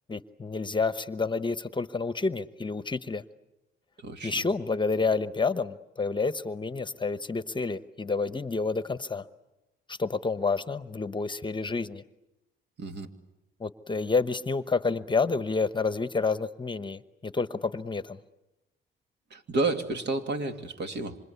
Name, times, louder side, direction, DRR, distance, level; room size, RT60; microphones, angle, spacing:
voice 1, 0.1-3.2 4.2-9.3 9.9-12.0 13.6-18.2, left 4 dB, 25° left, 13 dB, 1.0 m, -29 dB
voice 2, 19.3-21.2, right 2 dB, 60° right, 6 dB, 2.7 m, -30 dB
27.0 x 26.5 x 8.3 m, 0.99 s
cardioid pair, 90°, 20 cm